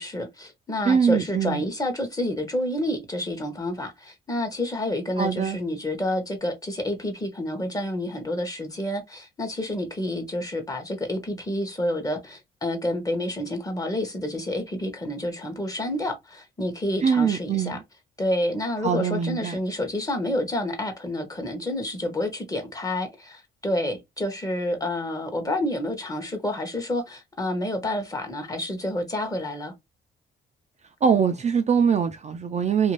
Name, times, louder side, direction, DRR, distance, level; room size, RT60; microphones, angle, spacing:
voice 1, 0.0-17.8 18.2-29.7, left 1 dB, 20° left, 0.9 m, -29 dB
voice 2, 0.9-1.6 5.2-5.6 17.0-17.8 18.8-19.6 31.0-32.9, right 6 dB, 35° right, 0.4 m, -22 dB
2.6 x 2.2 x 3.0 m
cardioid pair, 90°, 20 cm